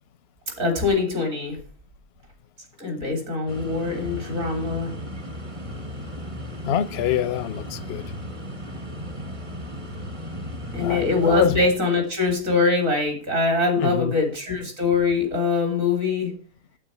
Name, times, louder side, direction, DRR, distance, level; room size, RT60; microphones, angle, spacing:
voice 1, 0.6-1.6 2.8-4.9 10.7-16.3, left 3 dB, 60° right, 3.7 m, -23 dB
sound 1, 3.5-11.7, equal, 25° right, 1.1 m, -35 dB
voice 2, 6.6-8.1 10.8-11.6 13.8-14.1, left 10 dB, 55° left, 0.8 m, -26 dB
8.7 x 8.5 x 7.1 m
omnidirectional pair, 1.6 m